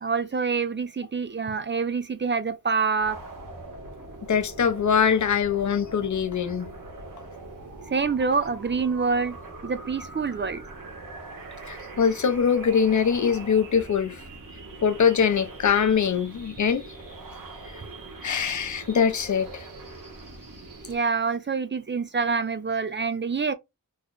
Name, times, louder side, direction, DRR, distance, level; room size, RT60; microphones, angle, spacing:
voice 1, 0.0-3.2 7.9-9.4 9.6-10.6 20.9-23.5, right 5 dB, 35° right, 0.4 m, -26 dB
sound 1, 3.0-21.0, right 2 dB, 70° right, 1.2 m, -42 dB
voice 2, 4.3-6.7 11.7-14.3 14.8-16.8 17.7-17.8 18.2-19.7, left 7 dB, 60° left, 0.6 m, -23 dB
3.1 x 2.1 x 3.8 m
wide cardioid pair, 95°, 34 cm